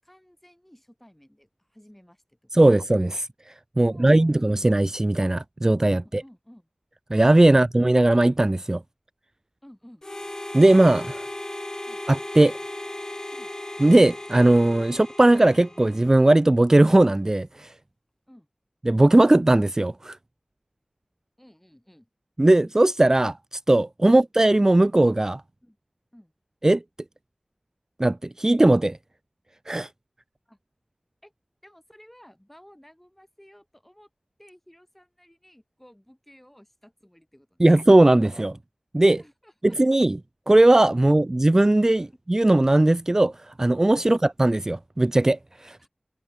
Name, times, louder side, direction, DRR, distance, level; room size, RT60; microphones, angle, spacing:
voice 1, 0.0-2.7 3.8-4.7 6.0-6.7 9.6-10.1 11.9-12.0 13.3-13.5 18.3-18.5 21.4-22.1 25.6-25.8 26.1-26.3 30.5-30.6 31.2-31.3 31.6-34.1 34.4-37.7 39.2-40.0 41.0-41.1 42.0-42.1 44.0-44.2 45.7-45.9, equal, 10° left, 7.9 m, -53 dB
voice 2, 2.5-6.2 7.1-8.8 10.5-11.2 12.1-12.5 13.8-17.7 18.9-20.2 22.4-25.4 26.6-26.8 28.0-29.0 29.7-29.9 37.6-38.6 38.9-39.2 39.6-40.2 40.5-45.9, right 1 dB, 25° right, 0.3 m, -19 dB
Harmonica, 10.0-16.4, left 1 dB, 30° left, 2.9 m, -37 dB
wide cardioid pair, 60°, 2 cm